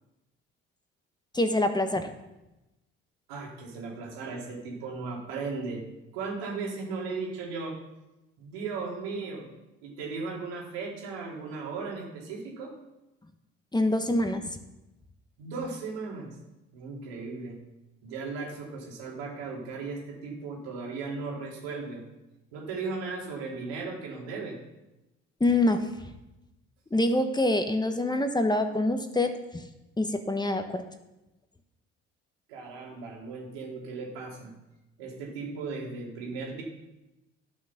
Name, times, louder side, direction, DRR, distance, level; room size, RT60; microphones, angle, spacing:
voice 1, 1.3-2.1 13.7-14.4 25.4-25.9 26.9-29.7 30.0-30.8, left 1 dB, 15° left, 7 dB, 1.3 m, -25 dB
voice 2, 3.3-5.8 6.1-7.8 8.4-9.4 9.8-12.7 15.4-16.3 16.7-17.6 18.0-22.0 22.5-24.6 32.5-34.5 35.0-36.6, right 4 dB, 90° right, -2 dB, 3.3 m, -36 dB
12.0 x 6.4 x 5.9 m, 0.98 s
supercardioid pair, 70°, 29 cm